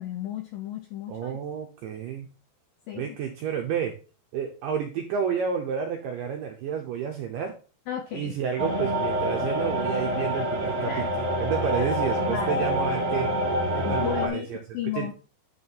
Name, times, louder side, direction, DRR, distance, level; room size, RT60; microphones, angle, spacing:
voice 1, 0.0-1.4 2.9-3.1 7.9-8.3 10.8-11.1 11.8-11.9 12.2-12.7 13.9-15.1, left 10 dB, 85° left, 6 dB, 2.0 m, -34 dB
voice 2, 1.1-2.3 2.9-4.0 4.3-7.6 8.1-13.3 13.7-14.6 15.0-15.1, right 7 dB, 80° right, 3 dB, 1.9 m, -30 dB
sound 1, 8.6-14.3, equal, 40° right, 1.3 m, -27 dB
10.5 x 3.6 x 4.2 m, 0.35 s
omnidirectional pair, 4.8 m